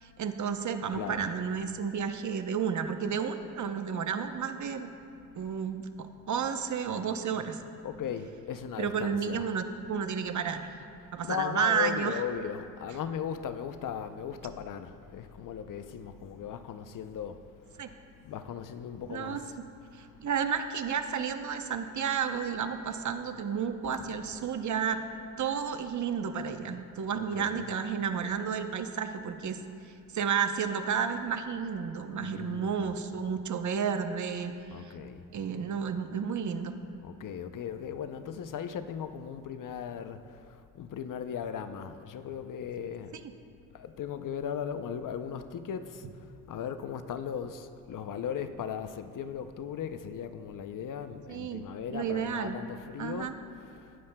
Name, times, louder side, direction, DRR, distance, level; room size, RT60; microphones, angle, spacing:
voice 1, 0.0-4.9 5.3-7.6 8.8-10.8 11.1-12.2 17.8-17.9 19.1-19.4 19.9-25.0 25.4-29.6 29.9-34.9 35.3-36.7 51.3-51.6 51.9-52.6 53.0-53.3, right 7 dB, 55° right, 0.8 m, -32 dB
voice 2, 0.9-1.2 7.8-9.5 11.2-17.9 18.2-19.4 23.8-24.1 27.1-27.7 32.2-32.9 34.7-35.2 37.0-43.1 43.7-54.0, left 8 dB, 60° left, 0.6 m, -38 dB
18.0 x 9.9 x 2.2 m
cardioid pair, 80°, 36 cm